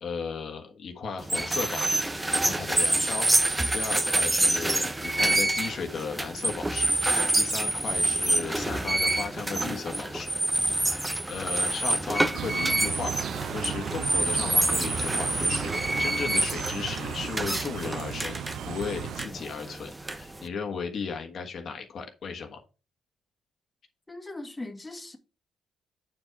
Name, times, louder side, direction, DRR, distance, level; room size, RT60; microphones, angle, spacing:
voice 1, 0.0-10.3 10.7-22.6, left 5 dB, 55° left, 1.4 m, -36 dB
sound 1, 1.2-20.5, right 2 dB, 15° right, 0.8 m, -27 dB
sound 2, 12.3-19.3, right 9 dB, 75° right, 0.5 m, -35 dB
voice 2, 24.1-25.2, left 2 dB, 15° left, 1.8 m, -39 dB
8.4 x 4.7 x 4.6 m
cardioid pair, 90°, 0 cm